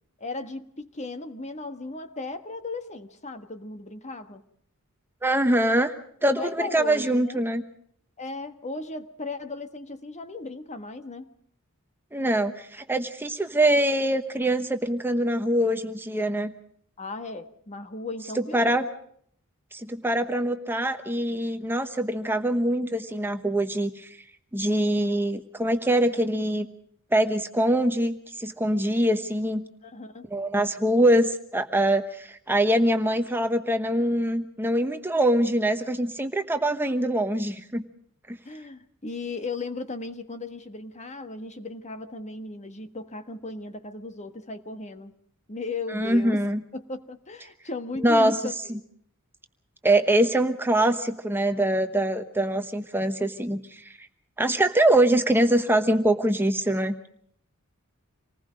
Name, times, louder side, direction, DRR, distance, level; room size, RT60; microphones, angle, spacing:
voice 1, 0.2-4.4 6.3-7.4 8.2-11.3 17.0-18.8 29.8-30.3 38.4-45.1 45.5-46.5 46.7-48.8, left 3 dB, 30° left, 9 dB, 1.5 m, -36 dB
voice 2, 5.2-5.9 6.2-7.6 12.1-16.5 18.5-18.9 19.7-24.1 24.5-26.7 27.1-29.6 30.3-37.8 38.3-38.4 45.9-46.6 48.0-48.4 49.8-54.1 54.4-56.9, right 1 dB, 10° right, 7 dB, 1.1 m, -23 dB
27.5 x 19.5 x 5.1 m, 0.63 s
head